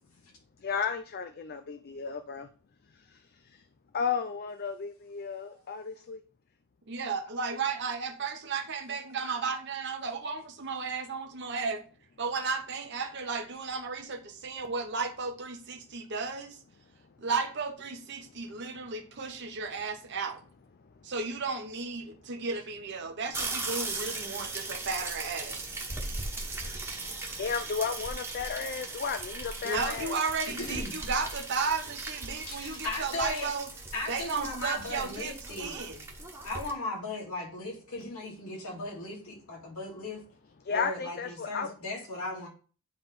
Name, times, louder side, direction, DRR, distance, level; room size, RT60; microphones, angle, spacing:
voice 1, 0.6-2.5 3.9-6.2 9.2-9.4 27.4-30.2 40.7-41.7, left 6 dB, 45° left, 0.5 m, -33 dB
voice 2, 6.9-11.8 12.2-16.6 17.2-20.4 21.0-25.6 29.6-33.7 34.1-36.0, right 4 dB, 55° right, 1.0 m, -34 dB
sound 1, 23.3-36.7, right 2 dB, 10° right, 1.2 m, -38 dB
voice 3, 30.4-31.0 32.4-33.5 33.9-35.8 36.4-40.3 40.7-42.5, left 2 dB, 85° left, 2.8 m, -37 dB
9.5 x 3.4 x 4.1 m
head